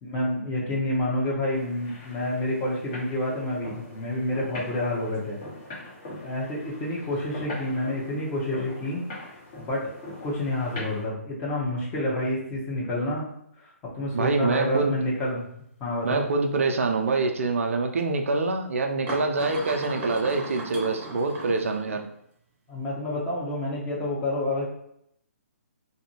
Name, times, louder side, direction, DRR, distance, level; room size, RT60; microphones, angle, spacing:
voice 1, 0.0-5.4 6.2-9.0 9.6-9.8 10.2-13.3 13.9-15.4 15.8-16.3 22.7-24.7, left 1 dB, 20° left, -4 dB, 0.8 m, -28 dB
sound 1, 1.5-11.0, left 1 dB, 35° left, 1.2 m, -42 dB
voice 2, 14.1-14.9 16.0-22.1, right 3 dB, 65° right, 4 dB, 0.4 m, -25 dB
sound 2, 14.5-14.6 15.1-15.4 16.6-16.7 18.0-18.1 19.1-22.2, right 1 dB, 20° right, 0.8 m, -37 dB
2.6 x 2.5 x 2.8 m, 0.73 s
figure-of-eight pair, 135°, 8 cm